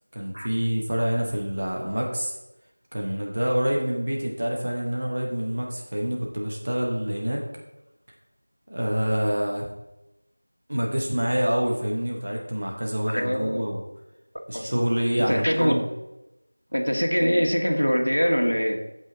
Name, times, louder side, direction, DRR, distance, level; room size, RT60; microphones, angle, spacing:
voice 1, 0.1-2.3 2.9-7.4 8.7-9.7 10.7-13.8 14.5-15.8, equal, 20° right, -1 dB, 0.9 m, -26 dB
voice 2, 13.1-13.6 14.5-14.7 15.3-15.7 16.7-18.8, equal, 70° left, 2 dB, 1.8 m, -23 dB
14.5 x 5.5 x 3.9 m, 0.95 s
figure-of-eight pair, 180°, 0 cm